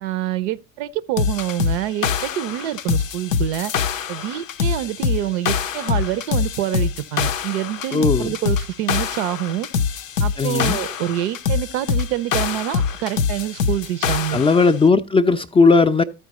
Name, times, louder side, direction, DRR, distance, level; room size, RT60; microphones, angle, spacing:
voice 1, 0.0-3.7 4.1-9.7 10.2-14.4, right 12 dB, 65° right, 0.6 m, -26 dB
sound 1, 1.2-14.7, left 6 dB, 85° left, 0.5 m, -24 dB
voice 2, 7.9-8.3 10.4-10.8 14.3-16.0, left 4 dB, 15° left, 0.4 m, -16 dB
13.0 x 4.5 x 4.0 m
figure-of-eight pair, 60°, 38 cm